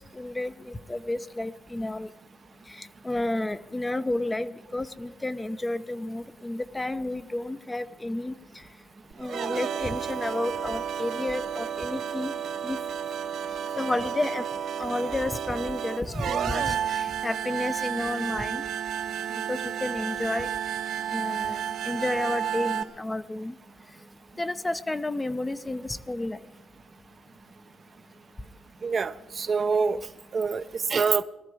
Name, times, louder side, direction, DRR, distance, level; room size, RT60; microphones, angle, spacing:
voice 1, 0.0-2.1 2.7-8.3 9.2-12.3 12.6-12.8 13.8-14.5 14.8-18.6 19.3-20.5 21.1-23.5 24.4-26.4, left 2 dB, 15° left, 12 dB, 0.6 m, -31 dB
sound 1, 9.1-22.8, right 8 dB, 70° right, 1.1 m, -31 dB
voice 2, 28.8-30.0 30.3-31.2, right 5 dB, 45° right, 11 dB, 0.6 m, -25 dB
20.5 x 13.5 x 4.8 m, 0.97 s
cardioid pair, 90°, 0 cm